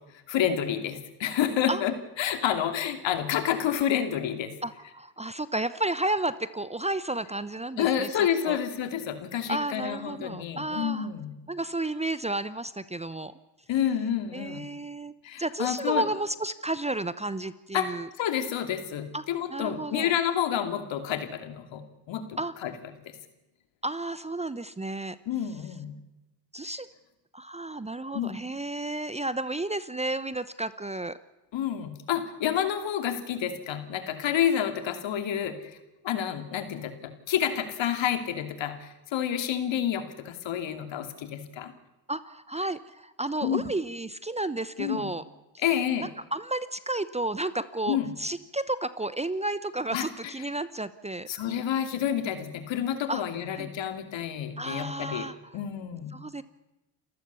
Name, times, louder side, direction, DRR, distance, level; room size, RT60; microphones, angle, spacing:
voice 1, 0.3-4.5 7.8-11.3 13.7-14.6 15.2-16.0 17.7-21.8 22.1-22.7 23.1-23.2 25.3-25.9 28.1-28.4 31.5-35.8 36.0-41.7 43.4-43.7 44.8-45.1 45.6-46.1 47.9-48.1 49.9-50.3 51.3-55.3 55.5-56.1, left 9 dB, 60° left, 8 dB, 2.9 m, -29 dB
voice 2, 4.6-8.6 9.5-11.1 11.5-13.3 14.3-15.1 15.4-18.1 19.1-19.2 19.5-20.1 22.4-22.5 23.8-25.2 26.5-26.9 27.3-31.2 42.1-45.2 46.0-51.3 53.1-53.2 53.6-53.7 54.6-55.6 56.1-56.4, right 2 dB, 15° right, 15 dB, 0.9 m, -32 dB
28.5 x 15.0 x 7.0 m, 1.0 s
hypercardioid pair, 65°, 50 cm